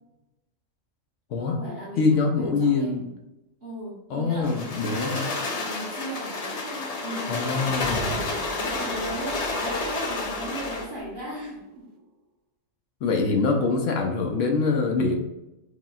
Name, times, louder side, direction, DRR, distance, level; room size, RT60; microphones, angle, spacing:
voice 1, 1.4-3.0 3.6-7.7 8.4-11.9, equal, 40° right, -7 dB, 1.6 m, -37 dB
voice 2, 2.0-3.1 4.1-5.2 7.3-8.2 13.0-15.2, left 4 dB, 75° left, 3 dB, 1.0 m, -24 dB
sound 1, 4.4-10.9, left 3 dB, 60° left, 0.4 m, -30 dB
sound 2, 7.8-12.0, right 3 dB, 85° right, 0.4 m, -40 dB
4.8 x 2.9 x 2.4 m, 0.93 s
omnidirectional pair, 1.3 m